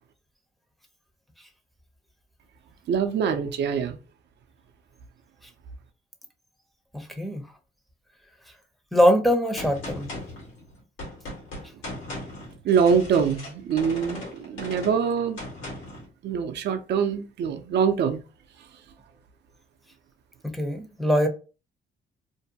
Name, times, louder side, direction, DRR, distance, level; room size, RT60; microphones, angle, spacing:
voice 1, 2.9-4.0 12.6-15.4 16.2-18.2, right 6 dB, 60° right, 0.5 m, -24 dB
voice 2, 6.9-7.4 8.9-10.1 20.4-21.3, equal, ahead, 0.6 m, -22 dB
Gunshot gunfire, 9.6-16.1, left 1 dB, 80° left, 1.2 m, -38 dB
2.6 x 2.2 x 2.7 m
cardioid pair, 90°, 20 cm